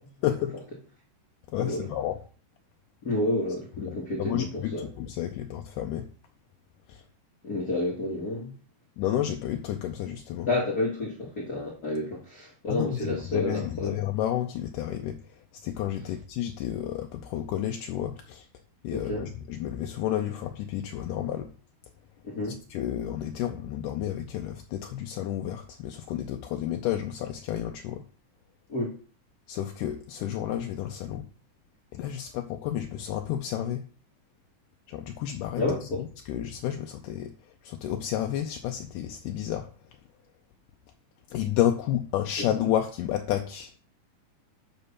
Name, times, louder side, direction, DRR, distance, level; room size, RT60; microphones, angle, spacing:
voice 1, 0.2-0.6 1.5-2.2 3.9-6.1 6.9-7.0 9.0-10.5 12.7-15.2 15.6-18.5 18.8-21.5 22.4-28.0 29.5-31.3 31.9-33.8 34.9-37.3 37.6-39.7 41.3-43.8, left 11 dB, 80° left, 2.1 m, -31 dB
voice 2, 3.0-4.9 7.4-8.5 10.5-13.9 18.9-19.3 22.2-22.6 28.7-29.0 35.6-36.0 42.4-42.5, left 2 dB, 45° left, 1.3 m, -30 dB
8.0 x 4.0 x 5.6 m
omnidirectional pair, 3.9 m